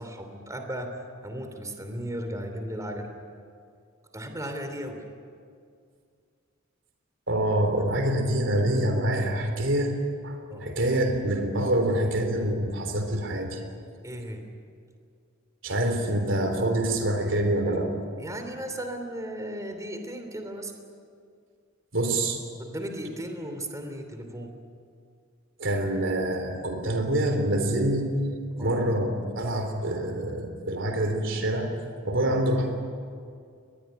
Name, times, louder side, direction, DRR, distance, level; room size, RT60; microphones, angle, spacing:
voice 1, 0.0-3.1 4.1-5.0 10.5-10.7 14.0-14.4 18.2-20.7 22.6-24.5 28.6-28.8 32.1-32.4, right 1 dB, 15° right, 6 dB, 2.9 m, -36 dB
voice 2, 7.3-9.9 10.2-13.6 15.6-17.9 21.9-22.4 25.6-28.1 28.6-31.7 32.0-32.8, right 1 dB, 65° right, 5 dB, 3.5 m, -26 dB
23.0 x 20.5 x 9.8 m, 2.2 s
head